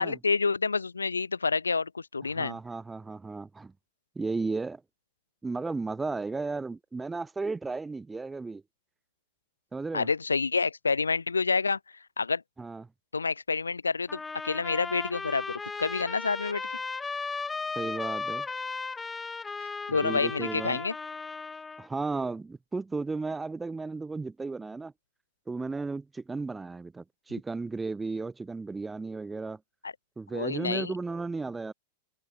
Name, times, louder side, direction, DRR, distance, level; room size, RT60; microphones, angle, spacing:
voice 1, 0.0-2.6 9.9-11.8 12.2-12.4 13.1-16.8 19.6-20.9 29.8-29.9 30.3-30.9, left 4 dB, 75° left, 0.4 m, -28 dB
voice 2, 2.3-3.7 4.2-4.8 5.4-8.6 9.7-10.1 12.6-12.8 17.8-18.5 20.0-20.8 21.8-24.9 25.5-29.6 30.2-31.7, right 3 dB, 10° right, 0.3 m, -34 dB
sound 1, 14.1-21.9, left 4 dB, 15° left, 0.7 m, -36 dB
figure-of-eight pair, 90°, 0 cm